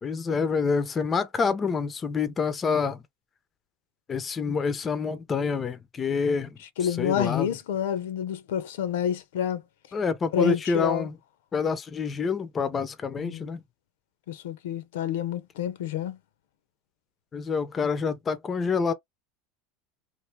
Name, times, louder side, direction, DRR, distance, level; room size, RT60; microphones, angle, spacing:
voice 1, 0.0-3.0 4.1-6.5 7.0-7.5 9.9-11.1 11.5-13.6 17.3-18.9, left 5 dB, 25° left, 0.6 m, -27 dB
voice 2, 6.8-9.6 10.3-11.1 13.2-13.5 14.3-16.2, left 9 dB, 90° left, 0.8 m, -28 dB
3.2 x 2.5 x 3.3 m
supercardioid pair, 135°, 0 cm